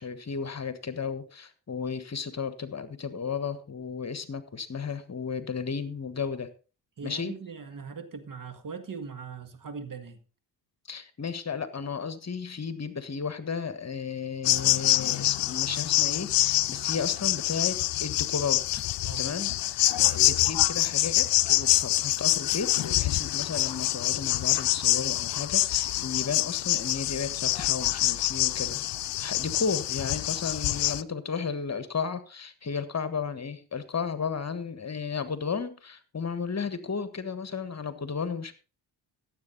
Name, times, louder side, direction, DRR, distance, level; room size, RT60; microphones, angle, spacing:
voice 1, 0.0-6.5 7.0-7.3 10.9-18.8 19.2-28.9 29.2-38.5, left 5 dB, 35° left, 1.5 m, -34 dB
voice 2, 7.0-10.2 19.0-19.4, right 5 dB, 40° right, 2.0 m, -40 dB
sound 1, 14.4-31.0, left 16 dB, 60° left, 0.7 m, -26 dB
14.5 x 8.0 x 4.1 m
hypercardioid pair, 55°, 48 cm